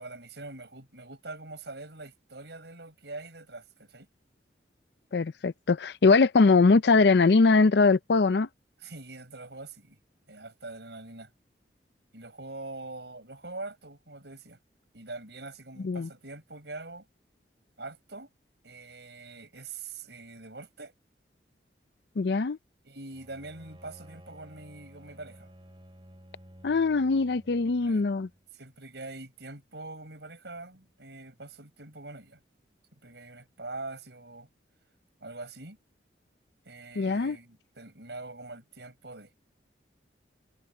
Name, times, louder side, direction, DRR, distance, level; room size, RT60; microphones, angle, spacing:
voice 1, 0.0-4.1 8.8-10.0 10.3-11.3 12.1-14.6 14.9-17.1 17.8-18.3 18.6-20.9 22.8-25.5 27.8-28.0 28.5-32.4 33.0-34.5 35.2-35.8 36.6-39.3, right 2 dB, 70° right, 5.2 m, -43 dB
voice 2, 5.1-8.5 15.8-16.1 22.2-22.6 26.6-28.3 37.0-37.4, left 4 dB, 65° left, 0.5 m, -22 dB
Bowed string instrument, 23.1-28.5, equal, 25° right, 3.9 m, -53 dB
head